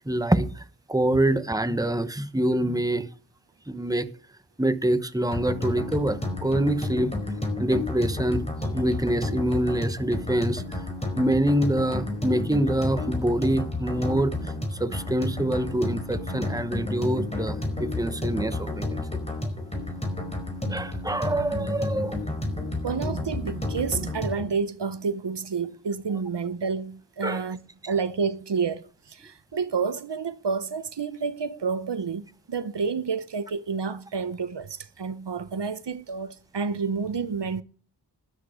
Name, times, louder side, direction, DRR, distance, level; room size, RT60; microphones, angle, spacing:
voice 1, 0.1-0.6 0.9-3.1 3.7-4.1 4.6-7.1 7.6-8.5 8.7-10.8 11.2-19.0 19.4-19.5 20.7-22.2 27.2-27.4, right 1 dB, 10° right, 1.1 m, -25 dB
sound 1, 5.3-24.5, left 2 dB, 15° left, 4.6 m, -31 dB
voice 2, 22.8-27.6 27.9-37.6, right 5 dB, 75° right, 0.9 m, -29 dB
13.0 x 10.0 x 5.1 m
wide cardioid pair, 70°, 42 cm